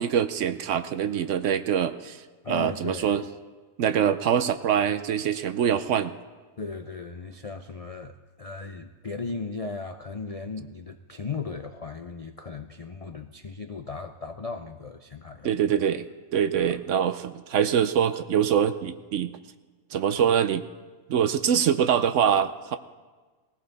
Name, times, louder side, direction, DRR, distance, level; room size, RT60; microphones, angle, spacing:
voice 1, 0.0-2.2 2.5-3.2 3.8-6.1 15.4-16.0 16.3-19.3 19.9-20.6 21.1-22.8, right 8 dB, 65° right, 11 dB, 0.9 m, -24 dB
voice 2, 2.4-3.3 6.6-15.5 16.5-16.8, left 4 dB, 50° left, 6 dB, 0.4 m, -37 dB
20.0 x 15.5 x 4.1 m, 1.4 s
omnidirectional pair, 1.5 m